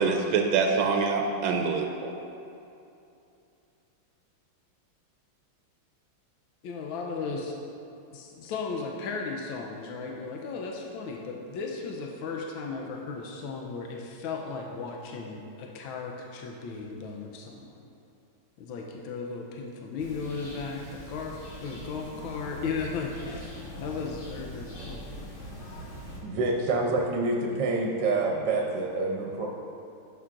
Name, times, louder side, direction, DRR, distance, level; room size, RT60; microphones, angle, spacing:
voice 1, 0.0-2.1, right 5 dB, 85° right, 3 dB, 1.4 m, -25 dB
voice 2, 6.6-7.5 8.1-17.8 18.6-23.5 23.8-25.1, left 4 dB, 80° left, 1 dB, 1.4 m, -36 dB
sound 1, 20.0-26.2, left 1 dB, 35° left, 1.9 m, -42 dB
voice 3, 26.2-29.5, right 3 dB, 70° right, 0 dB, 1.3 m, -27 dB
10.5 x 7.1 x 2.5 m, 2.7 s
omnidirectional pair, 2.2 m